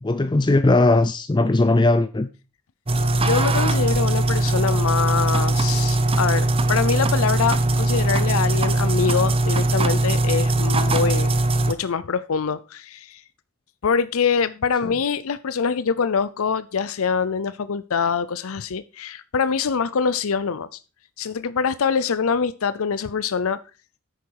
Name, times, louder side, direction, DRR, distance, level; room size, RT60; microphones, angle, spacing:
voice 1, 0.0-2.3, left 2 dB, 20° left, 0.4 m, -18 dB
sound 1, 2.9-11.7, right 2 dB, 25° right, 0.8 m, -20 dB
voice 2, 3.1-11.3 11.7-13.2 13.8-20.8 21.2-23.6, left 6 dB, 70° left, 0.6 m, -24 dB
10.5 x 8.4 x 4.7 m
head